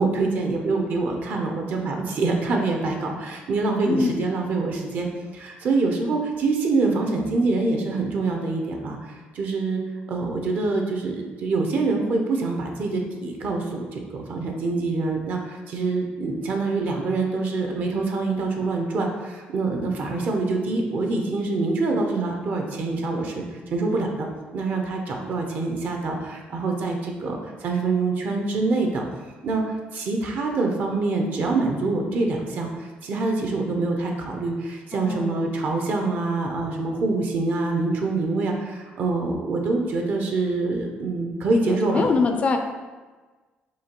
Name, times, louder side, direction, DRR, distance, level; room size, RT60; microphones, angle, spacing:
voice 1, 0.0-5.1 5.3-9.8 10.1-24.3 24.5-29.0 29.4-42.1, right 3 dB, 55° right, 2 dB, 0.5 m, -25 dB
voice 2, 3.9-4.2 34.9-35.5 41.6-42.6, left 4 dB, 35° left, 5 dB, 0.3 m, -24 dB
5.5 x 2.2 x 2.9 m, 1.3 s
cardioid pair, 130°, 4 cm